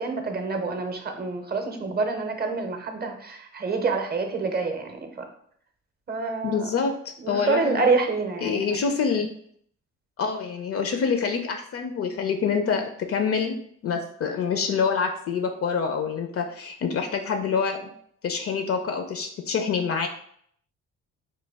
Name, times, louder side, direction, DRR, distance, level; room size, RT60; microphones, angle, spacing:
voice 1, 0.0-5.3 6.1-6.7 7.2-8.6, right 4 dB, 30° right, 5 dB, 0.6 m, -27 dB
voice 2, 6.4-6.9 7.3-7.8 8.4-9.3 10.2-13.6 13.8-17.8 18.2-20.1, left 5 dB, 50° left, 6 dB, 0.4 m, -26 dB
3.1 x 2.2 x 3.3 m, 0.64 s
cardioid pair, 90°, 30 cm